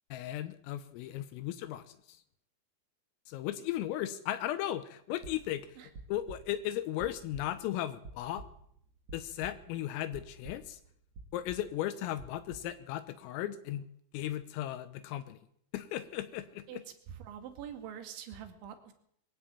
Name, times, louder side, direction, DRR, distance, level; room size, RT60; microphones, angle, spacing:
voice 1, 0.1-2.2 3.3-5.8 6.1-8.5 9.1-10.8 11.3-13.9 14.1-15.4 15.7-16.8, left 13 dB, 80° left, 11 dB, 3.6 m, -36 dB
sound 1, 5.2-9.8 10.1-10.9 11.1-11.7 12.2-12.7, right 3 dB, 35° right, 2.7 m, -49 dB
voice 2, 17.1-18.9, right 9 dB, 65° right, 6 dB, 4.4 m, -45 dB
22.5 x 13.0 x 8.9 m, 0.69 s
omnidirectional pair, 6.0 m